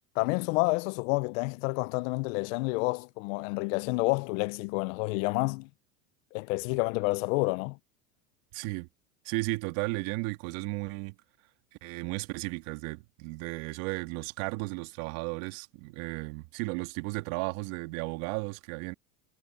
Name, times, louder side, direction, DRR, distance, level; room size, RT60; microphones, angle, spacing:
voice 1, 0.2-5.7 6.3-7.8, left 27 dB, 70° left, 0.8 m, -29 dB
voice 2, 8.5-8.9 9.2-11.1 11.8-18.9, right 24 dB, 70° right, 2.1 m, -34 dB
supercardioid pair, 105°, 41 cm